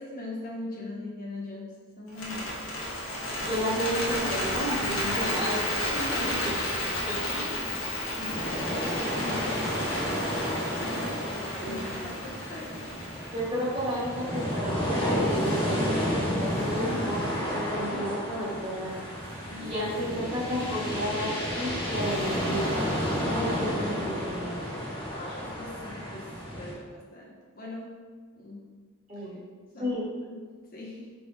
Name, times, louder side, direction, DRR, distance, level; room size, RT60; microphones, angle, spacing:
voice 1, 0.0-2.5 5.9-6.5 7.7-10.2 10.8-12.9 17.9-18.1 19.5-19.9 25.1-28.0 28.4-28.7 29.1-29.3 29.7-30.0 30.3-30.4 30.7-31.1, left 2 dB, 40° left, -3 dB, 0.5 m, -41 dB
Bird, 2.1-14.3, left 1 dB, 60° left, 0.9 m, -32 dB
voice 2, 3.4-5.9 7.1-7.8 11.6-12.0 13.3-18.9 19.6-24.6 29.1-29.4 29.8-30.1, equal, 25° right, -8 dB, 1.3 m, -32 dB
sound 1, 8.3-26.7, equal, 25° left, 1.0 m, -31 dB
Motorcycle, 10.9-26.0, right 1 dB, 60° right, 0.8 m, -48 dB
4.4 x 3.4 x 2.7 m, 1.5 s
head